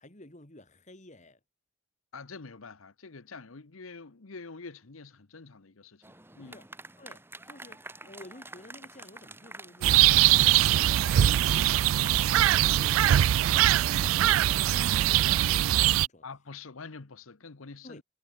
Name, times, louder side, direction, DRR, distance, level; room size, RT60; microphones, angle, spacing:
voice 1, 0.0-1.4 6.4-6.7 7.0-16.3 17.8-18.0, left 1 dB, 35° left, 2.7 m, -52 dB
voice 2, 2.1-6.0 6.4-6.6 16.2-18.0, left 4 dB, 85° left, 1.1 m, -45 dB
sound 1, 6.0-16.0, right 2 dB, 10° right, 4.4 m, -48 dB
sound 2, 9.8-16.1, right 12 dB, 80° right, 0.3 m, -22 dB
head